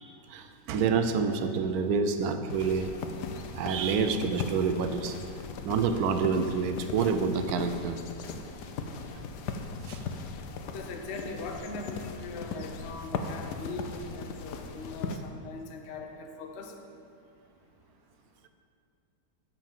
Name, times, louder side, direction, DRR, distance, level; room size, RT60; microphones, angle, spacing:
voice 1, 0.3-2.9 3.5-5.2 5.6-8.0 9.8-10.0, right 5 dB, 70° right, 8 dB, 1.1 m, -28 dB
sound 1, 2.5-15.2, left 4 dB, 80° left, 1.3 m, -38 dB
voice 2, 10.7-16.9, left 3 dB, 50° left, 3 dB, 0.9 m, -40 dB
8.4 x 5.4 x 7.4 m, 2.4 s
omnidirectional pair, 1.8 m